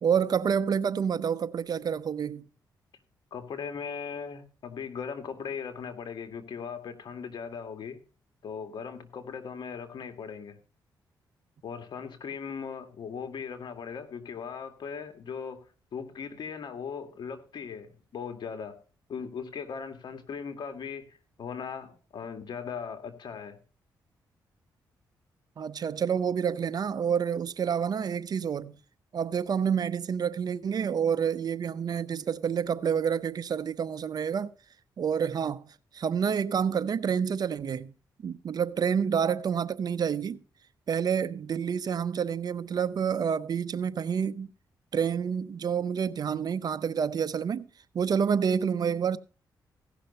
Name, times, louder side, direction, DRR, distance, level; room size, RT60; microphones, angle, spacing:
voice 1, 0.0-2.5 25.6-28.8 29.1-34.5 35.0-37.9 38.2-40.4 40.9-44.5 44.9-47.7 47.9-49.2, right 7 dB, 55° right, 0.7 m, -28 dB
voice 2, 3.3-8.0 8.4-10.6 11.6-15.6 15.9-18.8 19.1-23.6, left 6 dB, 65° left, 2.0 m, -38 dB
16.0 x 6.1 x 5.4 m
cardioid pair, 75°, 8 cm